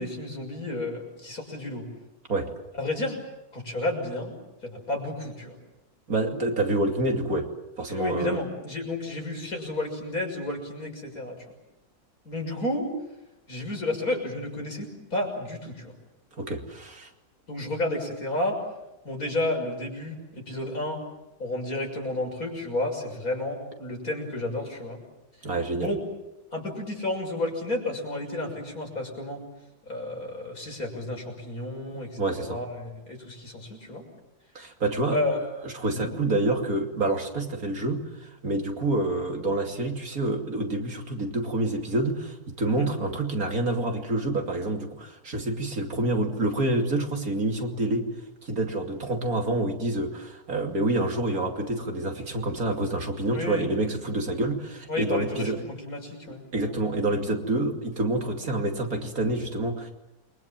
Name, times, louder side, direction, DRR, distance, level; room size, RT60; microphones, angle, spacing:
voice 1, 0.0-1.9 2.7-3.2 3.5-4.3 4.6-5.6 7.9-11.5 12.3-12.9 13.5-15.9 17.5-18.6 19.0-21.0 21.4-25.0 25.8-26.0 26.5-29.4 29.8-34.1 35.1-35.4 35.9-36.1 42.6-43.0 53.2-53.7 54.9-56.9, left 2 dB, 65° left, 2 dB, 6.9 m, -31 dB
voice 2, 6.1-7.5 7.8-8.4 16.4-17.1 25.4-25.9 31.9-32.6 34.5-35.2 35.6-48.1 48.4-55.6 56.5-59.9, right 2 dB, 65° right, 3 dB, 3.2 m, -27 dB
28.5 x 23.5 x 7.6 m, 0.97 s
omnidirectional pair, 1.7 m